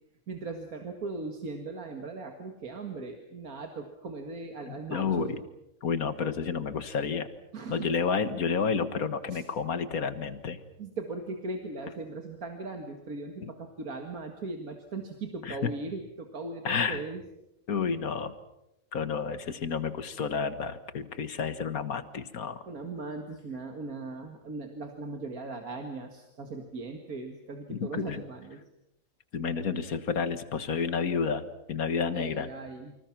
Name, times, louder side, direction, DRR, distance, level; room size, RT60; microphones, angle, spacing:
voice 1, 0.3-5.4 7.5-7.9 9.3-9.4 10.8-17.2 22.7-28.6 32.1-33.0, right 3 dB, 80° right, 4 dB, 2.3 m, -38 dB
voice 2, 4.7-5.4 5.8-7.3 7.7-10.6 13.4-13.5 15.4-15.7 16.6-17.0 17.7-18.3 18.9-22.6 27.7-28.2 29.3-32.5, left 6 dB, 80° left, 11 dB, 1.9 m, -30 dB
29.0 x 25.5 x 6.0 m, 0.87 s
omnidirectional pair, 1.5 m